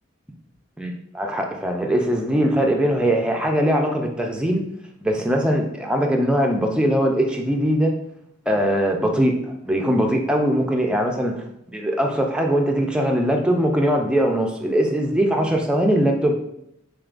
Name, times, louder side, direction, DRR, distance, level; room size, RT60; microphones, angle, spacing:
voice 1, 0.8-4.6 5.0-7.9 8.5-16.3, equal, 5° right, 1 dB, 0.3 m, -21 dB
3.5 x 3.2 x 2.4 m, 0.77 s
head